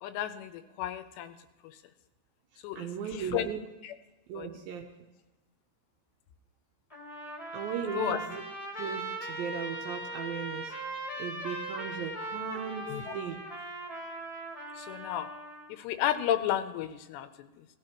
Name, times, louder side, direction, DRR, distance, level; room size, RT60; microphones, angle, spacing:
voice 1, 0.0-1.4 1.6-1.8 2.6-3.5 3.8-3.9 4.3-4.5 7.9-8.2 12.9-13.1 14.7-15.3 15.7-17.7, left 11 dB, 85° left, 10 dB, 2.8 m, -33 dB
voice 2, 2.8-3.6 4.3-4.8 7.5-8.4 8.8-10.7 11.2-13.4, right 8 dB, 80° right, 2 dB, 2.2 m, -37 dB
Trumpet, 6.9-15.7, right 1 dB, 15° left, 1.1 m, -39 dB
17.0 x 13.5 x 3.0 m, 1.1 s
omnidirectional pair, 4.9 m